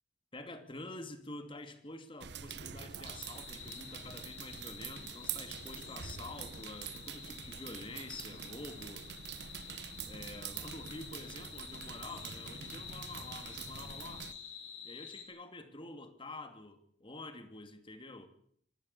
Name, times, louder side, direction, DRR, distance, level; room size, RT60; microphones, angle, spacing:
voice 1, 0.3-9.1 10.1-14.3 14.8-18.3, left 2 dB, 25° left, 8 dB, 2.7 m, -48 dB
sound 1, 2.2-14.3, right 7 dB, 60° right, 1.2 m, -45 dB
sound 2, 3.0-15.3, left 8 dB, 70° left, 4.9 m, -50 dB
26.5 x 12.0 x 8.5 m, 0.62 s
head